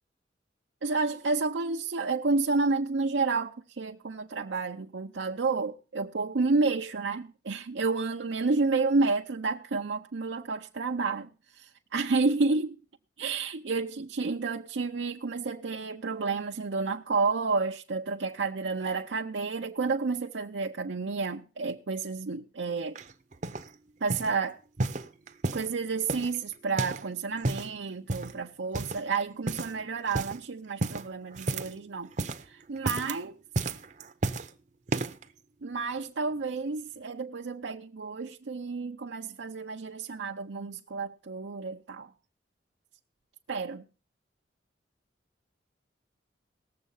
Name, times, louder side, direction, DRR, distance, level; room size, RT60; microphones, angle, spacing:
voice 1, 0.8-12.8 13.2-23.0 24.0-24.6 25.5-32.1 32.4-33.4 35.6-42.1 43.5-43.8, right 4 dB, 85° right, 0.6 m, -30 dB
sound 1, 22.9-23.7 24.1-24.4 24.8-25.7 26.1-27.1 27.3-27.7 28.1-28.4 28.7-29.2 29.5-29.8 30.1-30.4 30.8-32.5 32.8-33.2 33.5-34.5 34.9-35.2 35.9-36.0, right 2 dB, 40° right, 0.6 m, -32 dB
18.0 x 7.4 x 5.5 m
head